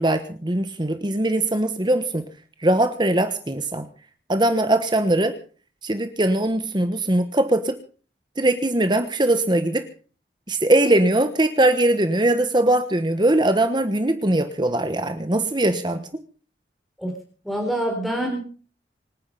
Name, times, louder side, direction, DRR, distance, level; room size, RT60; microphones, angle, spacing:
voice 1, 0.0-2.2 2.6-3.9 4.3-5.3 5.8-7.7 8.4-9.8 10.5-16.1, right 1 dB, 25° right, 9 dB, 1.2 m, -21 dB
voice 2, 17.4-18.4, right 1 dB, ahead, 1 dB, 4.2 m, -25 dB
25.5 x 9.7 x 5.5 m, 0.41 s
head